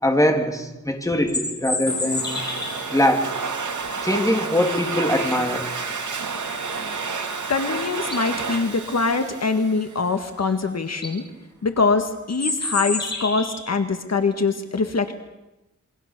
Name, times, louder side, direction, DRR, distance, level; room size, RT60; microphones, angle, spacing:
voice 1, 0.0-2.4 2.9-3.3 4.0-5.7, left 1 dB, 10° left, 3 dB, 3.3 m, -22 dB
sound 1, 1.1-2.9 7.4-7.5 7.9-8.4 10.4-10.5 10.9-11.1 12.3-13.7, left 2 dB, 35° left, 7.4 m, -29 dB
Domestic sounds home sounds, 1.9-10.3, right 4 dB, 75° right, 2.9 m, -30 dB
voice 2, 7.5-11.2 11.6-15.1, left 4 dB, 60° left, 7 dB, 1.8 m, -23 dB
28.0 x 23.5 x 6.9 m, 0.95 s
wide cardioid pair, 110°, 29 cm